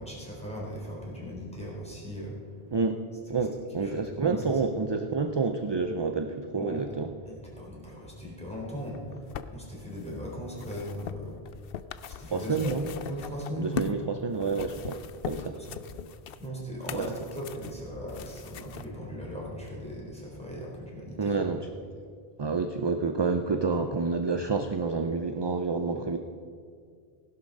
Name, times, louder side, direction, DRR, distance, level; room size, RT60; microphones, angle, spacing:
voice 1, 0.0-2.4 3.4-3.5 3.8-4.4 6.6-6.8 7.3-11.4 12.1-14.3 16.4-21.4, equal, 5° left, -5 dB, 4.1 m, -38 dB
voice 2, 2.7-7.1 12.3-12.8 13.6-15.6 16.9-17.1 21.2-21.7 22.4-26.2, right 4 dB, 30° right, 7 dB, 0.5 m, -29 dB
sound 1, 8.9-14.0 14.4-18.9 19.7-19.8, left 7 dB, 70° left, 0.8 m, -41 dB
16.5 x 11.5 x 5.4 m, 2.2 s
omnidirectional pair, 1.0 m